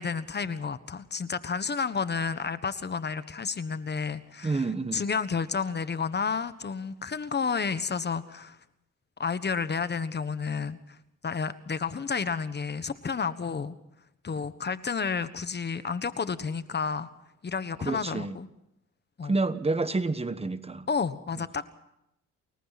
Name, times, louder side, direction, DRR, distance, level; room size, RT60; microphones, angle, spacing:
voice 1, 0.0-4.7 4.9-8.6 9.2-11.0 11.2-13.7 14.2-17.1 17.4-18.5 19.2-19.3 20.9-21.7, left 5 dB, 35° left, 1.3 m, -31 dB
voice 2, 4.4-5.0 17.8-18.4 19.2-20.9, right 3 dB, 20° right, 1.3 m, -29 dB
29.5 x 21.5 x 4.2 m
cardioid pair, 90°, 30 cm